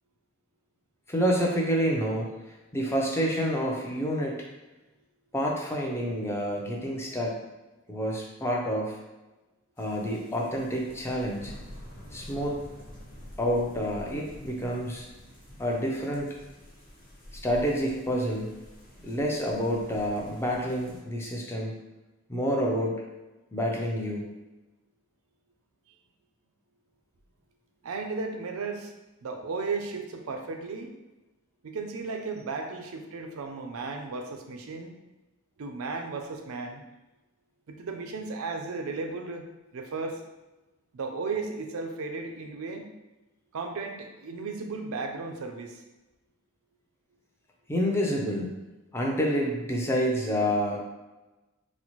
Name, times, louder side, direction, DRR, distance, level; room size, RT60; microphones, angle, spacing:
voice 1, 1.1-2.3 2.7-4.4 5.3-7.4 7.9-9.0 9.8-11.5 12.1-12.6 13.4-15.1 15.6-16.3 17.4-18.5 19.0-21.7 22.3-22.9 23.5-24.3 47.7-48.5 48.9-50.8, equal, 10° left, -2 dB, 0.4 m, -28 dB
sound 1, 9.8-21.0, equal, 40° left, 1.1 m, -48 dB
voice 2, 27.8-28.9 29.2-30.9 31.6-34.9 35.6-36.8 37.7-39.4 39.7-40.2 40.9-42.9 43.5-45.8, right 4 dB, 80° right, 5 dB, 0.4 m, -35 dB
4.1 x 2.1 x 3.0 m, 1.1 s
head